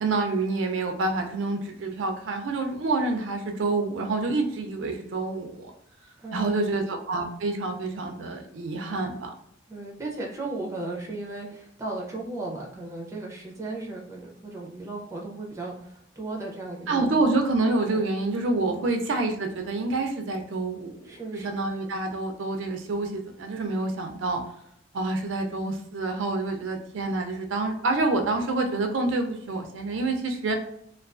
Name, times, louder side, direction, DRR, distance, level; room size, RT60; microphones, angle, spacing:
voice 1, 0.0-5.7 6.3-9.3 16.9-24.4 24.9-30.6, right 3 dB, 85° right, 4 dB, 0.4 m, -27 dB
voice 2, 6.2-6.7 9.7-17.1 17.9-18.0 18.6-19.0 21.0-21.5, right 2 dB, 15° right, -1 dB, 0.4 m, -36 dB
2.3 x 2.2 x 2.4 m, 0.72 s
head